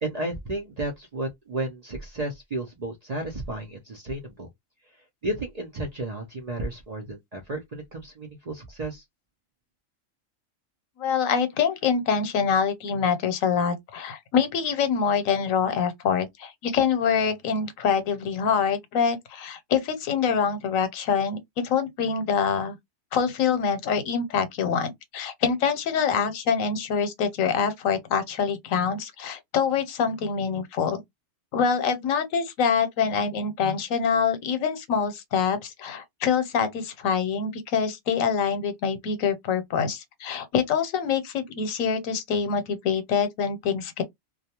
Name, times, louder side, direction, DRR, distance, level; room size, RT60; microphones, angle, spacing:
voice 1, 0.0-4.5 4.9-9.0, right 2 dB, 50° right, 0.5 m, -33 dB
voice 2, 11.0-21.4 21.6-22.8 23.1-31.0 31.5-44.0, left 6 dB, 85° left, 1.1 m, -25 dB
2.3 x 2.2 x 2.8 m
omnidirectional pair, 1.4 m